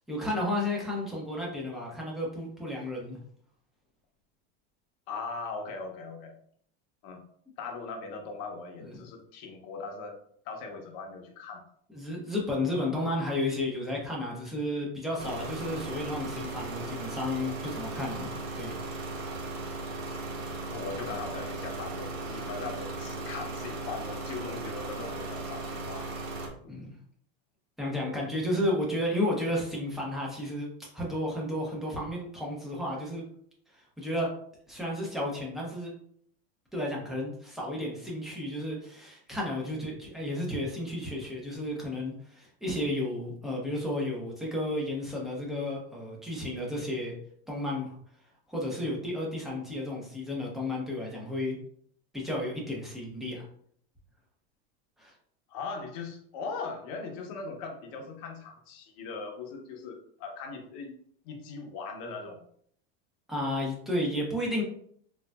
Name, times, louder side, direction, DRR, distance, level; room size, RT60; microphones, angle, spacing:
voice 1, 0.1-3.2 8.8-9.0 11.9-18.8 26.7-26.9 27.8-30.7 30.9-33.2 34.0-34.3 34.7-35.9 36.7-47.1 47.5-48.0 48.5-51.6 52.1-53.4 55.0-55.1 63.3-64.6, left 1 dB, ahead, -4 dB, 0.8 m, -32 dB
voice 2, 5.1-6.3 7.0-7.2 7.6-10.2 10.4-11.6 12.6-12.9 20.7-26.1 26.6-26.9 55.5-61.0 61.2-62.4, left 4 dB, 55° left, 3 dB, 0.8 m, -39 dB
sound 1, 15.2-26.5, right 2 dB, 90° right, 0.9 m, -37 dB
3.8 x 2.5 x 2.2 m, 0.63 s
supercardioid pair, 135°, 31 cm